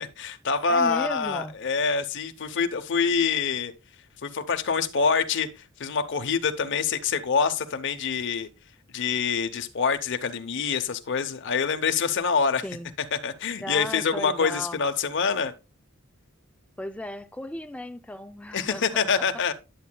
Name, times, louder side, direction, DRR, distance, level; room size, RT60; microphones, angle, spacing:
voice 1, 0.0-3.7 4.2-8.5 8.9-12.6 13.1-15.5 18.5-19.5, left 5 dB, 60° left, 0.7 m, -26 dB
voice 2, 0.7-1.6 12.6-12.9 13.6-14.8 16.8-19.1, left 1 dB, 5° left, 0.4 m, -35 dB
10.5 x 7.4 x 2.2 m
head